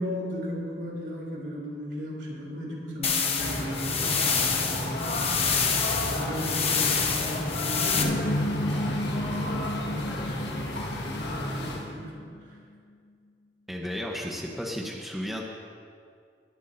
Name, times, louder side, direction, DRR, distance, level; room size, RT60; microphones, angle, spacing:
voice 1, 0.0-5.6 6.0-12.3, equal, 70° right, -3 dB, 3.5 m, -37 dB
sound 1, 3.0-8.0, left 6 dB, 35° left, 1.0 m, -27 dB
sound 2, 3.4-11.9, left 1 dB, 80° left, 1.7 m, -32 dB
sound 3, 8.0-12.6, left 1 dB, 55° left, 0.7 m, -32 dB
voice 2, 13.7-15.4, equal, ahead, -1 dB, 1.0 m, -33 dB
20.0 x 11.0 x 2.7 m, 2.2 s
head